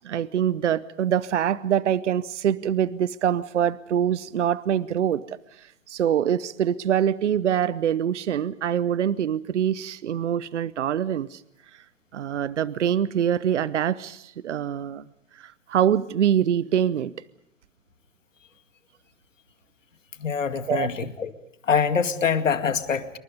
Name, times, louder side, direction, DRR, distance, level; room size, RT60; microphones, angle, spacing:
voice 1, 0.0-11.4 12.1-15.0 15.3-17.1 20.7-20.9, right 9 dB, 65° right, 19 dB, 0.9 m, -24 dB
voice 2, 20.2-21.3 21.6-23.1, left 6 dB, 70° left, 9 dB, 2.3 m, -24 dB
28.0 x 24.5 x 5.3 m, 0.79 s
figure-of-eight pair, 110°, 39 cm